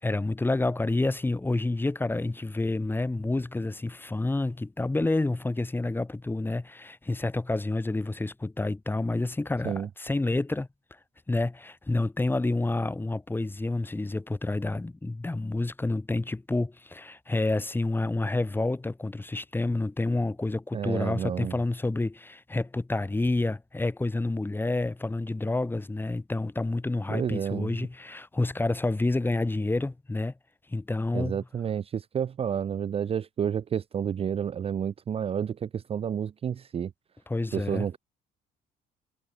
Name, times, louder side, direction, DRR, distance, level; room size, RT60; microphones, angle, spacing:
voice 1, 0.0-10.7 11.3-30.3 30.7-31.4 37.3-37.9, left 2 dB, 10° left, 2.4 m, -29 dB
voice 2, 20.7-21.5 27.1-27.7 31.1-36.9 37.5-38.0, right 8 dB, 35° right, 0.6 m, -30 dB
cardioid pair, 110°, 17 cm